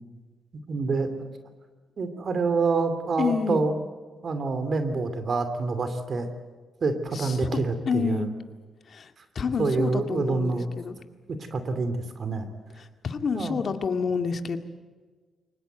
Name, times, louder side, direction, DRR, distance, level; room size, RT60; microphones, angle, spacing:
voice 1, 0.7-1.3 2.0-3.7 4.2-6.3 6.8-8.3 9.6-10.7 11.3-12.5 13.3-13.6, right 4 dB, 50° right, 10 dB, 2.7 m, -27 dB
voice 2, 3.2-3.6 7.1-7.6 7.9-8.3 8.9-11.0 12.8-14.6, left 5 dB, 55° left, 7 dB, 2.0 m, -29 dB
23.0 x 19.5 x 8.2 m, 1.4 s
cardioid pair, 80°, 0 cm